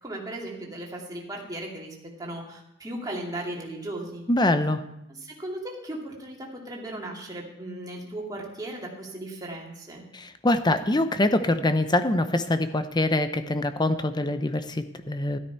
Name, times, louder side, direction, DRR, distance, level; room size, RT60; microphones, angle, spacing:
voice 1, 0.0-4.2 5.2-10.0, right 1 dB, 15° right, -2 dB, 2.3 m, -36 dB
voice 2, 4.3-4.8 10.1-15.4, left 1 dB, 20° left, 10 dB, 0.7 m, -24 dB
13.0 x 12.5 x 4.6 m, 0.84 s
head